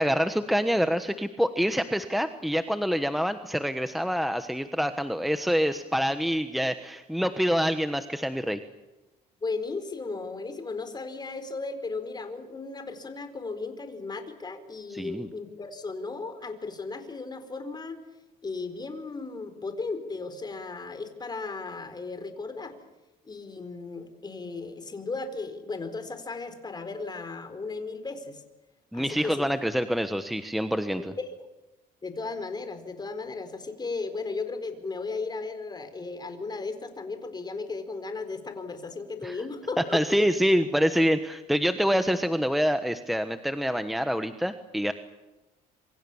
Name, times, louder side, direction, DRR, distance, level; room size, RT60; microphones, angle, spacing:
voice 1, 0.0-8.6 14.9-15.3 28.9-31.1 39.2-39.4 39.9-44.9, equal, ahead, 9 dB, 1.2 m, -26 dB
voice 2, 9.4-18.0 18.4-22.7 23.2-28.4 28.9-29.4 31.2-31.5 32.0-40.2, left 3 dB, 25° left, 8 dB, 4.4 m, -35 dB
27.0 x 24.5 x 7.2 m, 1.0 s
cardioid pair, 110°, 17 cm